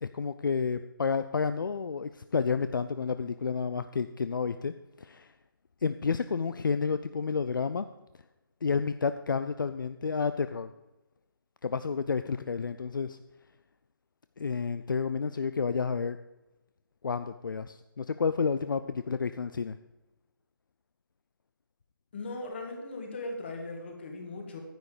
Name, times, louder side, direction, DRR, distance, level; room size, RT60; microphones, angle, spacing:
voice 1, 0.0-5.3 5.8-7.9 8.6-10.7 11.6-13.2 14.4-16.2 17.0-19.8, left 5 dB, 65° left, 11 dB, 0.5 m, -30 dB
voice 2, 22.1-24.6, left 2 dB, 30° left, 3 dB, 1.9 m, -38 dB
10.0 x 9.6 x 5.0 m, 1.0 s
hypercardioid pair, 170°, 12 cm